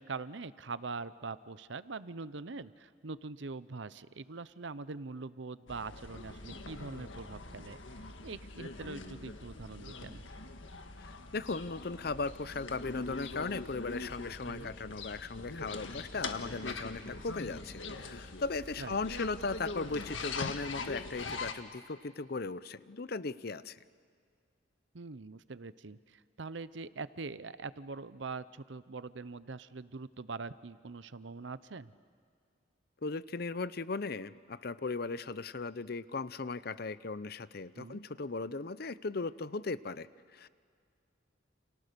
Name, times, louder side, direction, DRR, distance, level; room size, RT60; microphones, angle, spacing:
voice 1, 0.0-10.2 14.5-14.7 18.8-19.0 24.9-31.9 37.7-38.0, right 4 dB, 70° right, 15 dB, 0.7 m, -43 dB
sound 1, 5.7-21.5, left 3 dB, 80° left, 1.7 m, -43 dB
voice 2, 11.0-23.8 33.0-40.5, left 3 dB, 50° left, 16 dB, 0.7 m, -37 dB
30.0 x 29.0 x 6.8 m, 2.2 s
head